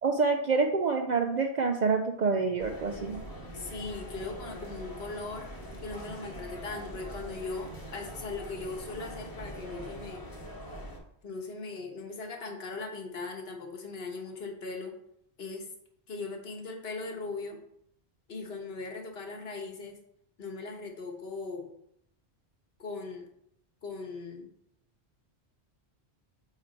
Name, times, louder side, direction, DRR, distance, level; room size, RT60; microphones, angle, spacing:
voice 1, 0.0-3.2, right 4 dB, 55° right, 4 dB, 0.5 m, -27 dB
sound 1, 2.6-11.0, equal, 20° left, 1.0 m, -43 dB
voice 2, 3.5-10.2 11.2-14.9 15.4-15.7 16.1-17.6 18.3-20.0 20.4-21.7 22.8-23.3 23.8-24.5, left 3 dB, 65° left, 3 dB, 1.3 m, -39 dB
8.2 x 3.4 x 4.0 m, 0.74 s
omnidirectional pair, 1.1 m